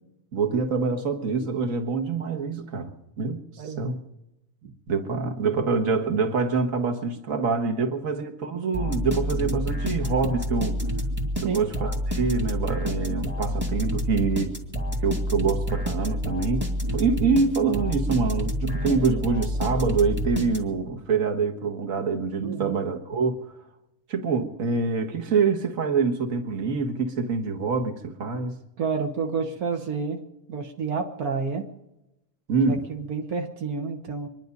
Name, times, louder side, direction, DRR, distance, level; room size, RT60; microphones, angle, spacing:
voice 1, 0.3-4.0 4.9-10.8 11.4-14.6 15.0-23.5 24.1-28.6 32.5-32.8, right 4 dB, 45° right, 5 dB, 1.0 m, -25 dB
voice 2, 3.6-4.0 4.6-4.7 5.1-5.2 7.8-7.9 11.4-11.6 22.4-22.8 28.8-30.2 30.5-31.7 32.7-34.3, right 5 dB, 80° right, 3 dB, 0.8 m, -30 dB
sound 1, 8.7-20.9, equal, 5° right, 1.4 m, -28 dB
25.0 x 11.0 x 5.3 m, 0.91 s
omnidirectional pair, 3.5 m